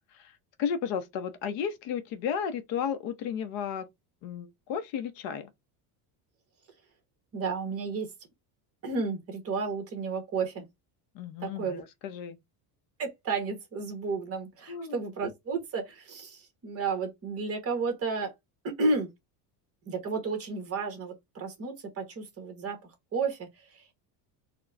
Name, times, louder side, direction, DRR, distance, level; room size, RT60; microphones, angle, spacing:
voice 1, 0.0-3.9 4.2-5.5 11.1-12.4 14.7-15.0, left 7 dB, 65° left, 0.9 m, -34 dB
voice 2, 7.3-8.1 8.8-10.6 11.4-11.8 13.0-18.3 18.6-19.1 19.9-23.5 23.7-23.8, right 4 dB, 30° right, 1.4 m, -32 dB
4.3 x 2.3 x 4.0 m
cardioid pair, 165°, 47 cm